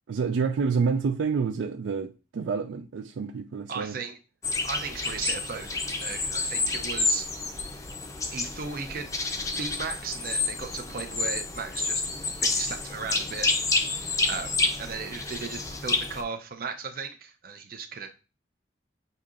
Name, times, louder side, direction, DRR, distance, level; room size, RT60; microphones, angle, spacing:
voice 1, 0.1-4.0, right 5 dB, 85° right, 0.4 m, -28 dB
voice 2, 3.7-4.2 4.6-7.3 8.3-9.1 9.6-12.0 12.4-13.5 14.2-18.2, right 5 dB, 50° right, 0.6 m, -36 dB
sound 1, 4.4-16.2, left 3 dB, 15° left, 0.5 m, -29 dB
6.7 x 2.8 x 2.4 m
head